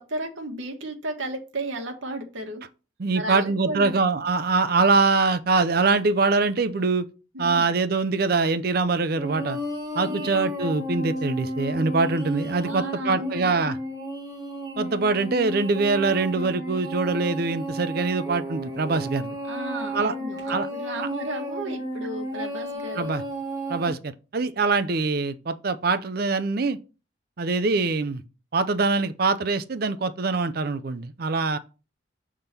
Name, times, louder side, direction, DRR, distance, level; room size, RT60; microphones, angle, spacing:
voice 1, 0.0-2.6 3.1-4.0 7.3-7.7 10.0-10.4 12.6-13.7 19.4-23.1, right 1 dB, 70° right, 1.4 m, -34 dB
voice 2, 3.0-7.0 7.4-9.6 9.9-13.8 14.8-19.4 19.9-20.1 20.5-20.7 23.0-23.2 23.7-26.8 27.4-28.2 28.5-31.6, right 3 dB, 50° right, 0.5 m, -23 dB
Funny alien ship sound long, 9.2-23.9, right 1 dB, 20° right, 1.7 m, -33 dB
6.6 x 3.7 x 5.9 m
head